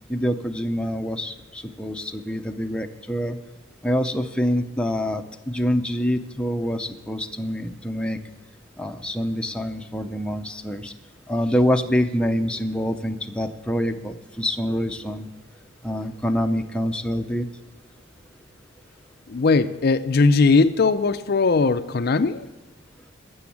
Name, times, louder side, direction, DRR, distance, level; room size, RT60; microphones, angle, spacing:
voice 1, 0.1-3.4 3.8-8.2 8.8-10.9 11.3-15.3 15.8-17.5, equal, 5° left, 5 dB, 0.6 m, -26 dB
voice 2, 19.3-22.5, left 4 dB, 50° left, 11 dB, 0.4 m, -19 dB
13.0 x 7.0 x 8.4 m, 1.2 s
head